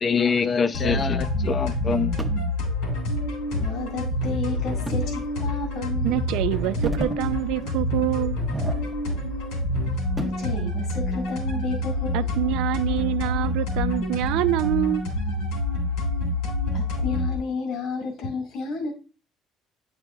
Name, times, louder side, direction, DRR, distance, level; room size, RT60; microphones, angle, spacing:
voice 1, 0.0-2.1, left 5 dB, 30° left, 0.4 m, -24 dB
sound 1, 0.7-17.4, left 1 dB, 90° left, 3.1 m, -27 dB
sound 2, 2.2-2.5 4.9-5.1 5.6-5.7 6.5-7.3 7.6-7.8 8.3-9.3 9.6-10.5 12.1-13.2 13.7-13.8 14.5-14.9, right 2 dB, 15° right, 0.7 m, -34 dB
voice 2, 3.6-6.3 10.2-12.2 16.7-18.9, left 4 dB, 75° left, 1.7 m, -32 dB
voice 3, 6.0-8.4 12.1-15.0, right 15 dB, 80° right, 0.3 m, -26 dB
8.9 x 4.9 x 2.3 m
cardioid pair, 115°, 0 cm